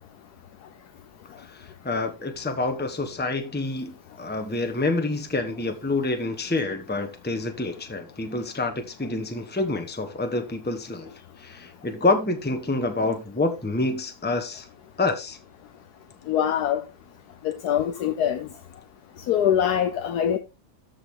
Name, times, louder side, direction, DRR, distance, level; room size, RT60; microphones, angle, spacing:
voice 1, 1.4-11.1 11.4-14.7 15.0-15.4, left 2 dB, 5° left, 1.2 m, -27 dB
voice 2, 16.3-16.8 17.4-18.5 19.3-20.4, left 9 dB, 80° left, 1.3 m, -23 dB
13.5 x 5.3 x 3.8 m
omnidirectional pair, 1.7 m